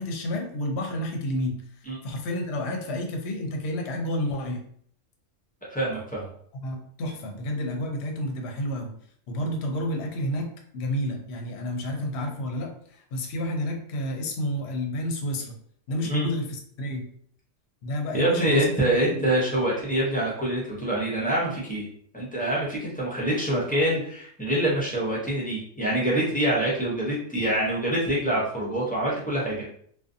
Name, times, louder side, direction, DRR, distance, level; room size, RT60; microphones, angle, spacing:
voice 1, 0.0-1.6 2.0-4.6 6.6-8.9 9.3-15.5 15.9-17.1 17.8-18.7 19.1-19.3, left 1 dB, 65° left, 2 dB, 0.8 m, -30 dB
voice 2, 5.7-6.3 16.1-16.3 18.1-21.8 22.1-29.7, right 1 dB, 10° left, -6 dB, 0.4 m, -25 dB
2.5 x 2.3 x 2.5 m, 0.62 s
omnidirectional pair, 1.3 m